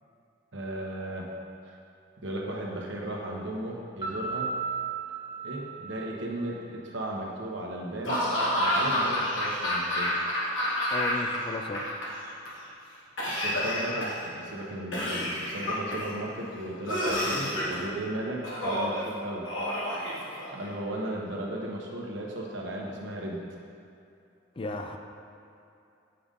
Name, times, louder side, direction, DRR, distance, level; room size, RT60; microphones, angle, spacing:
voice 1, 0.5-1.3 1.7-1.8 2.2-4.5 5.4-8.2 8.6-10.1 13.2-19.5 20.5-23.4, right 1 dB, 70° right, -2 dB, 1.1 m, -35 dB
Piano, 4.0-6.8, right 5 dB, 25° right, 1.1 m, -35 dB
Laughter / Cough, 8.0-11.4 11.6-12.5 13.2-14.3 14.9-16.1 16.9-17.8 18.4-19.0 19.5-20.7, left 1 dB, 85° left, 1.5 m, -29 dB
voice 2, 10.9-11.8 24.6-25.0, left 2 dB, 30° left, 4 dB, 0.4 m, -34 dB
7.9 x 3.8 x 5.2 m, 2.7 s
head